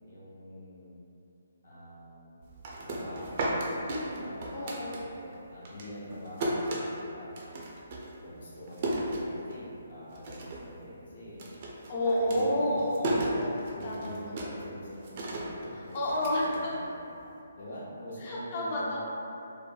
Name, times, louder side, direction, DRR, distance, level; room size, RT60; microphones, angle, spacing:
voice 1, 0.0-1.0 1.6-2.5 2.8-3.6 4.2-7.6 8.2-11.5 12.2-12.9 13.7-17.0 17.5-19.0, equal, 60° left, -8 dB, 0.8 m, -44 dB
sound 1, 2.4-5.4 5.6-9.8 10.1-10.7 11.0-17.2, right 1 dB, 40° right, 0.4 m, -34 dB
voice 2, 3.9-5.0 11.9-13.5 13.8-14.1 15.7-16.7 18.2-19.0, left 1 dB, 35° left, -5 dB, 0.5 m, -30 dB
2.7 x 2.1 x 2.3 m, 2.7 s
figure-of-eight pair, 135°, 0 cm